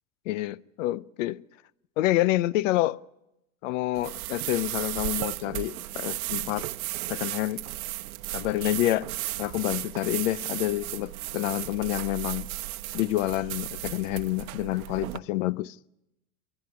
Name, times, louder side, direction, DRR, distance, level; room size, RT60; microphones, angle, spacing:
voice 1, 0.3-1.4 2.0-3.0 3.6-6.7 7.1-7.6 8.3-9.1 9.4-12.5 12.9-15.8, left 16 dB, 60° left, 0.7 m, -28 dB
sound 1, 3.9-15.2, right 17 dB, 75° right, 0.9 m, -35 dB
28.0 x 11.0 x 9.7 m
supercardioid pair, 150°, 43 cm